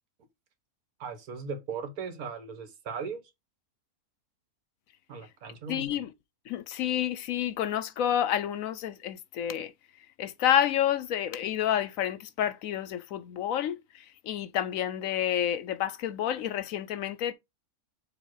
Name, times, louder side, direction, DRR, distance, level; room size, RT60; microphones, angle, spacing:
voice 1, 1.0-3.2 5.1-5.9, right 5 dB, 75° right, 1.6 m, -38 dB
voice 2, 5.7-6.1 6.5-9.7 10.2-17.3, left 10 dB, 70° left, 0.9 m, -29 dB
7.1 x 3.0 x 4.5 m
omnidirectional pair, 1.6 m